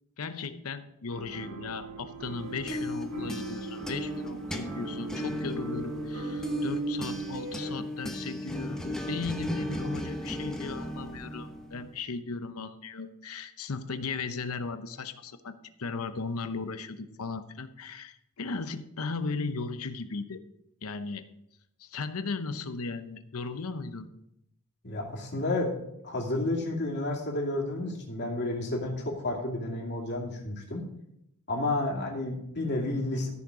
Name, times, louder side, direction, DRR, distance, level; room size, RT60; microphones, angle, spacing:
voice 1, 0.2-20.4 20.8-21.3 21.8-24.1, left 4 dB, 80° left, 11 dB, 0.8 m, -36 dB
sound 1, 1.1-7.7, right 4 dB, 85° right, 2.3 m, -38 dB
sound 2, 2.3-12.0, left 1 dB, 5° left, 1.0 m, -36 dB
voice 2, 24.8-25.8 26.0-30.8 31.5-33.3, left 2 dB, 55° left, -2 dB, 2.6 m, -31 dB
13.5 x 6.4 x 4.8 m, 0.80 s
head